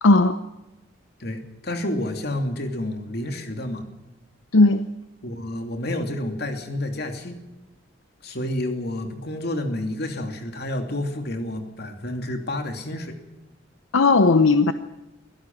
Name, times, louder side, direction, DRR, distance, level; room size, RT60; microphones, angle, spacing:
voice 1, 0.0-0.4 4.5-4.8 13.9-14.7, left 3 dB, 85° left, 10 dB, 0.9 m, -16 dB
voice 2, 1.2-3.8 5.2-7.4 8.2-13.2, left 1 dB, 55° left, 5 dB, 2.9 m, -29 dB
22.5 x 16.5 x 7.3 m, 1.0 s
head